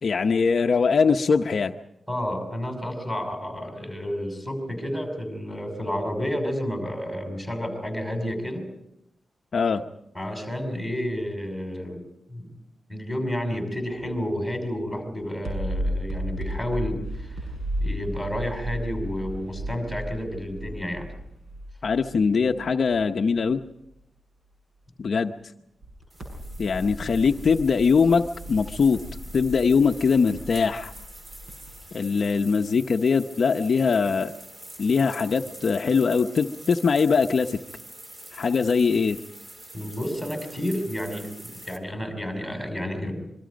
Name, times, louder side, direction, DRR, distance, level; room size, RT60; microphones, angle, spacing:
voice 1, 0.0-1.7 9.5-9.8 21.8-23.6 25.0-25.3 26.6-29.0 29.3-30.9 31.9-34.3 34.8-37.6 38.3-39.2, left 5 dB, 50° left, 5 dB, 0.7 m, -22 dB
voice 2, 2.1-8.7 10.1-12.0 12.3-12.5 12.9-17.4 17.8-21.1 39.7-41.3 41.7-43.2, equal, 5° right, 3 dB, 5.6 m, -30 dB
sound 1, 14.2-14.5 14.8-23.1 23.4-23.5 25.8-31.7, equal, 60° right, 7.0 m, -35 dB
sound 2, 26.1-41.8, right 1 dB, 30° right, 2.5 m, -45 dB
26.0 x 23.5 x 5.2 m, 0.81 s
wide cardioid pair, 170°, 0 cm